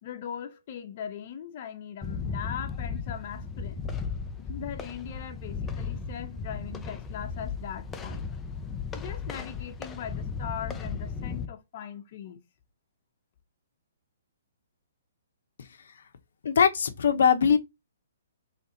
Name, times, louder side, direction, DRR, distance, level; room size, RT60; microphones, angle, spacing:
voice 1, 0.0-3.9 4.4-8.3 8.9-12.4, left 9 dB, 40° left, 0.8 m, -40 dB
sound 1, 2.0-11.5, left 5 dB, 10° left, 0.5 m, -36 dB
voice 2, 16.4-17.6, left 7 dB, 70° left, 0.8 m, -21 dB
4.1 x 3.3 x 3.9 m
hypercardioid pair, 160°, 0 cm